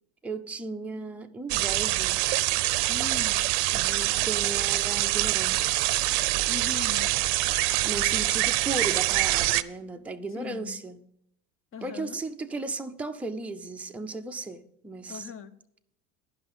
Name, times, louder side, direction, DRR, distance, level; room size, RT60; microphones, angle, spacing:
voice 1, 0.2-2.3 3.7-5.8 7.8-11.0 11.8-15.3, right 3 dB, 5° right, 0.5 m, -36 dB
sound 1, 1.5-9.6, right 18 dB, 60° right, 0.7 m, -25 dB
voice 2, 2.9-3.4 6.5-7.1 10.3-10.8 11.7-12.2 15.1-15.5, left 7 dB, 30° left, 0.8 m, -39 dB
11.0 x 5.8 x 7.2 m
hypercardioid pair, 100°, 44 cm